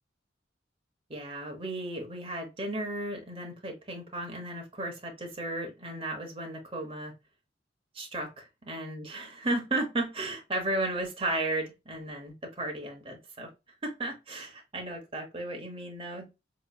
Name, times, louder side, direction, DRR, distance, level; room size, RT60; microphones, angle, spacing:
voice 1, 1.1-7.1 7.9-13.5 13.8-16.3, right 1 dB, 30° right, 1.0 m, -34 dB
4.0 x 3.0 x 2.3 m
head